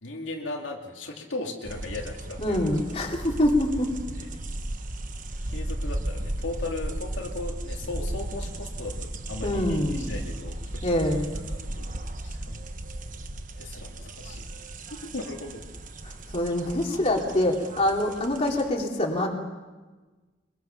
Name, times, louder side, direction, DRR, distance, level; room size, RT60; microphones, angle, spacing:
voice 1, 0.0-2.6 5.5-10.9 11.3-11.4 11.7-12.6 13.5-14.5 14.9-15.6, left 2 dB, 80° left, 1 dB, 2.4 m, -37 dB
sound 1, 1.6-18.7, right 1 dB, 45° right, 1.2 m, -35 dB
voice 2, 2.4-4.0 9.4-10.1 10.8-11.2 16.0-19.3, left 1 dB, 30° left, 0 dB, 2.8 m, -25 dB
23.5 x 23.0 x 5.8 m, 1.3 s
head